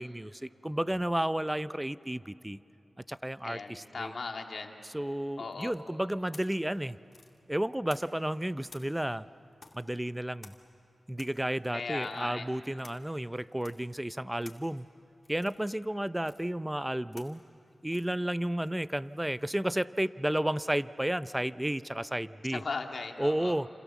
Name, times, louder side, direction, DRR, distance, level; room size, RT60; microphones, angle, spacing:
voice 1, 0.0-2.6 3.1-4.1 4.9-7.0 7.5-9.3 9.7-10.5 11.1-14.9 15.3-17.4 17.8-22.6 23.2-23.7, right 1 dB, 10° right, 15 dB, 0.6 m, -32 dB
voice 2, 3.4-4.7 5.4-5.7 11.7-12.5 22.5-23.5, left 4 dB, 70° left, 3 dB, 2.1 m, -37 dB
sound 1, 5.5-8.3 8.7-19.6, left 3 dB, 55° left, 2.5 m, -57 dB
28.5 x 27.5 x 7.2 m, 2.8 s
cardioid pair, 55°, 0 cm